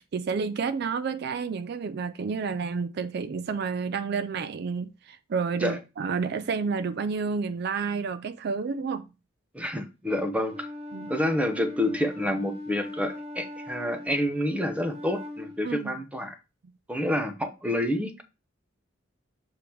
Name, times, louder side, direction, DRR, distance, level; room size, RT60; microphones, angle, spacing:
voice 1, 0.0-9.1 10.9-11.1 15.6-15.9, right 5 dB, 55° right, 0.4 m, -30 dB
voice 2, 9.5-10.7 11.1-16.4 16.9-18.2, left 1 dB, 5° right, 0.7 m, -28 dB
Wind instrument woodwind instrument, 10.5-15.6, left 1 dB, 30° right, 1.0 m, -40 dB
6.9 x 3.4 x 4.5 m
head